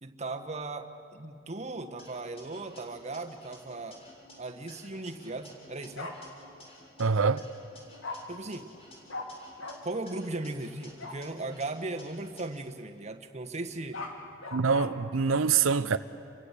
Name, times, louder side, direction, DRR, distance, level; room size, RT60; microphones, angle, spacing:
voice 1, 0.0-4.0 4.4-6.1 8.3-8.7 9.8-14.0, right 2 dB, 35° right, 1.3 m, -37 dB
sound 1, 2.0-4.3 4.7-7.0 7.4-9.7 10.1-12.4, left 1 dB, 30° left, 7.0 m, -53 dB
Bark, 6.0-6.1 8.0-8.2 9.1-9.3 9.6-9.8 11.0-11.2 13.7-14.9, left 3 dB, 85° left, 2.7 m, -38 dB
voice 2, 7.0-7.5 14.5-16.0, right 5 dB, 85° right, 0.6 m, -25 dB
30.0 x 23.5 x 8.3 m
head